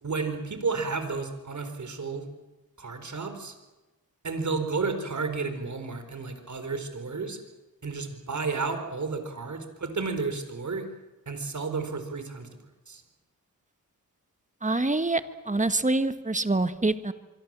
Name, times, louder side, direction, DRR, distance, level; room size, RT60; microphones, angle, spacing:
voice 1, 0.0-2.3 2.8-3.5 4.2-7.4 7.8-10.8 11.3-12.5 12.9-13.0, right 4 dB, 55° right, 8 dB, 4.3 m, -32 dB
voice 2, 14.6-17.1, right 2 dB, 20° right, 11 dB, 1.7 m, -26 dB
25.5 x 24.0 x 7.6 m, 1.1 s
cardioid pair, 80°, 35 cm